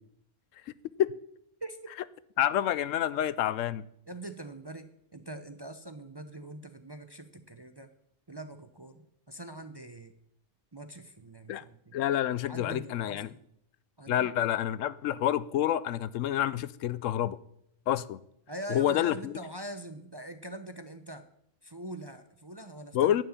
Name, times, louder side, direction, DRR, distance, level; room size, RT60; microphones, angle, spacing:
voice 1, 1.6-1.9 4.1-7.9 8.3-10.1 10.7-12.0 12.5-13.4 14.0-14.3 18.5-21.2 21.6-23.2, right 1 dB, 25° right, 0.6 m, -43 dB
voice 2, 2.4-3.8 11.5-11.6 11.9-13.3 14.1-17.4 17.9-18.2 18.7-19.3 22.9-23.2, left 11 dB, 80° left, 1.0 m, -28 dB
11.5 x 6.1 x 8.7 m
omnidirectional pair, 1.3 m